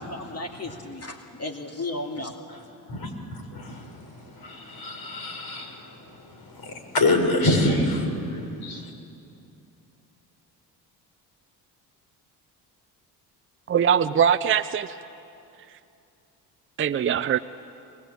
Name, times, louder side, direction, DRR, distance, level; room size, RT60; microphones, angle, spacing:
voice 1, 0.0-2.3, left 2 dB, 30° left, 3 dB, 2.3 m, -34 dB
voice 2, 2.9-8.9, left 2 dB, 50° left, 4 dB, 5.1 m, -27 dB
voice 3, 13.7-15.0 16.8-17.4, right 8 dB, 25° right, 10 dB, 0.6 m, -22 dB
22.5 x 20.5 x 8.7 m, 2.7 s
hypercardioid pair, 60°, 47 cm